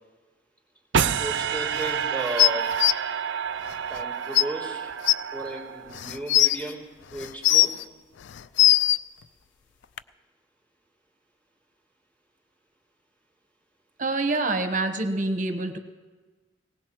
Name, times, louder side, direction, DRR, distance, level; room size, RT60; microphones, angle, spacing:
sound 1, 0.9-6.1, right 7 dB, 80° right, 0.5 m, -29 dB
voice 1, 1.2-2.7 3.9-4.9 5.3-7.7, right 2 dB, 10° left, -3 dB, 3.0 m, -34 dB
sound 2, 2.4-2.9 4.0-4.1 4.3-4.4 5.1-5.2 5.9-6.6 7.2-7.8 8.3-9.0 10.0-10.1, left 14 dB, 75° left, 0.4 m, -19 dB
voice 2, 14.0-15.8, right 2 dB, 45° right, 6 dB, 1.1 m, -26 dB
19.5 x 18.5 x 3.1 m, 1.3 s
head